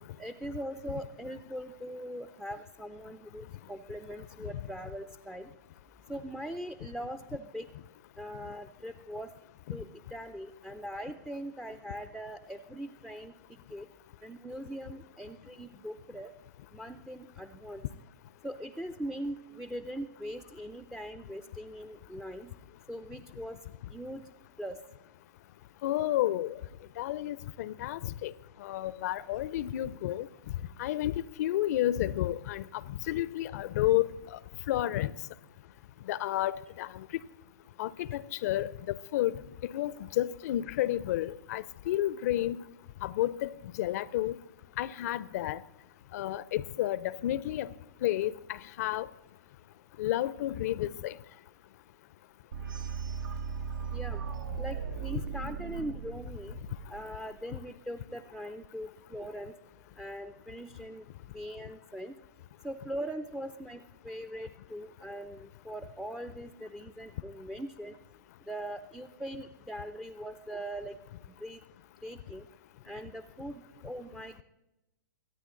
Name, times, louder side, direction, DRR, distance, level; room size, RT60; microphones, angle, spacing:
voice 1, 0.2-5.5 6.1-7.7 8.2-9.3 9.7-13.3 13.7-13.9 14.2-16.3 16.7-17.8 18.4-22.5 22.9-23.6 23.9-24.2 24.6-24.8 53.9-54.2 54.6-56.6 56.9-59.5 60.0-61.0 61.3-62.1 62.6-67.9 68.5-71.0 71.4-71.6 72.0-72.5 72.8-74.4, right 1 dB, 5° right, 0.5 m, -41 dB
voice 2, 25.8-26.5 27.0-28.3 28.6-30.3 30.8-34.4 34.7-35.1 36.1-37.1 37.8-39.3 39.7-42.6 43.0-43.5 43.7-44.4 44.8-45.6 46.1-47.7 48.0-49.1 50.0-51.1, left 14 dB, 50° left, 0.5 m, -31 dB
sound 1, 52.5-57.4, right 7 dB, 70° right, 0.9 m, -37 dB
23.0 x 9.5 x 3.8 m
hypercardioid pair, 115°, 11 cm